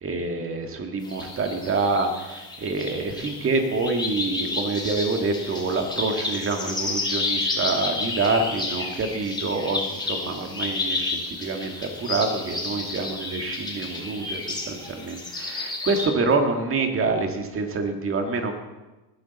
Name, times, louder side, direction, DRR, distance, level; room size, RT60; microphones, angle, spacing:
voice 1, 0.0-18.5, right 3 dB, 25° right, 5 dB, 1.8 m, -26 dB
sound 1, 1.0-16.1, left 3 dB, 10° left, 2.6 m, -31 dB
19.5 x 10.0 x 4.1 m, 1.1 s
cardioid pair, 140°, 50 cm